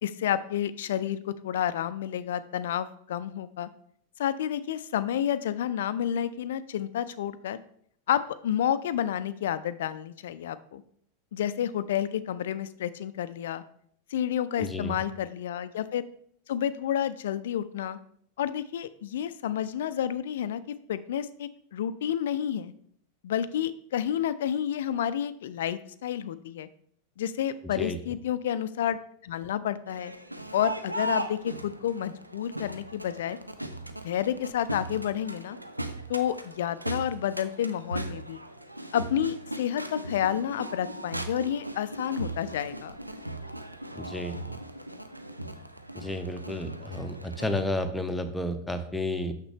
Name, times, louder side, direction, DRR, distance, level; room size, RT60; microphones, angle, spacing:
voice 1, 0.0-3.7 4.2-7.6 8.1-10.8 11.3-13.6 14.1-16.0 16.5-18.0 18.4-20.6 20.9-22.7 23.2-26.7 27.2-29.0 29.2-30.1 30.5-33.4 34.0-35.6 36.1-38.4 38.9-43.0, left 10 dB, 60° left, 14 dB, 0.4 m, -30 dB
voice 2, 14.6-15.0 27.8-28.0 44.0-44.6 45.9-49.3, left 1 dB, 5° left, 7 dB, 0.7 m, -32 dB
Crowd, 29.9-47.6, right 1 dB, 85° right, 0.5 m, -38 dB
6.5 x 6.1 x 3.4 m, 0.66 s
figure-of-eight pair, 90°, 0 cm